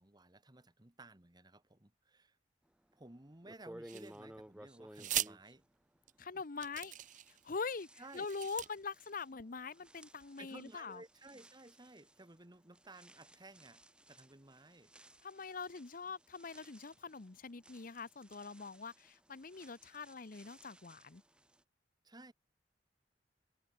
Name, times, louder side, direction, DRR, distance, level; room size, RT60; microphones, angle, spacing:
voice 1, 0.0-2.4 2.9-5.6 6.2-6.3 8.0-8.3 10.4-13.8 14.1-14.9 22.0-22.3, right 2 dB, 25° right, 1.7 m, -56 dB
sound 1, 2.9-3.0 3.4-6.6 6.9-21.6, right 1 dB, 5° right, 0.7 m, -59 dB
sound 2, 3.9-4.4 4.9-5.3 6.1-6.2 6.6-7.4 8.0-8.7, right 13 dB, 45° right, 0.6 m, -39 dB
voice 2, 6.2-7.0 7.4-7.9 8.1-11.0 15.2-21.2, left 4 dB, 50° left, 0.8 m, -43 dB
head